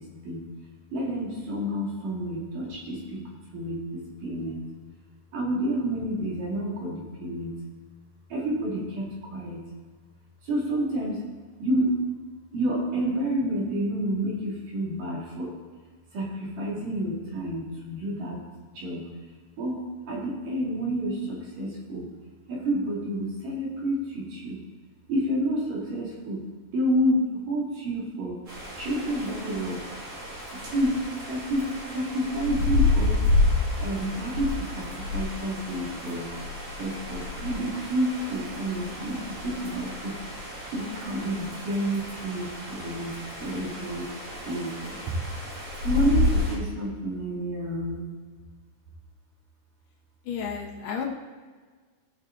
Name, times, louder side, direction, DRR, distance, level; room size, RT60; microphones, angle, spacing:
voice 1, 0.9-3.0 3.5-3.8 4.2-4.6 5.3-7.5 8.3-9.1 9.3-9.6 10.5-11.2 11.6-11.9 12.5-15.5 16.1-16.3 16.6-18.4 18.8-19.0 19.6-19.8 20.1-22.1 22.5-24.6 25.1-26.4 26.7-27.2 27.5-28.4 28.8-29.8 30.7-31.0 31.3-31.6 31.9-33.1 33.8-34.5 34.8-34.9 35.1-36.3 36.8-40.1 40.7-43.1 43.4-44.1 44.5-44.7 45.8-48.0, equal, 55° right, -4 dB, 3.7 m, -29 dB
sound 1, 28.5-46.6, left 2 dB, 40° right, 3.7 m, -30 dB
voice 2, 50.3-51.0, left 7 dB, 75° left, 0 dB, 3.2 m, -32 dB
18.0 x 6.3 x 3.9 m, 1.5 s
omnidirectional pair, 4.9 m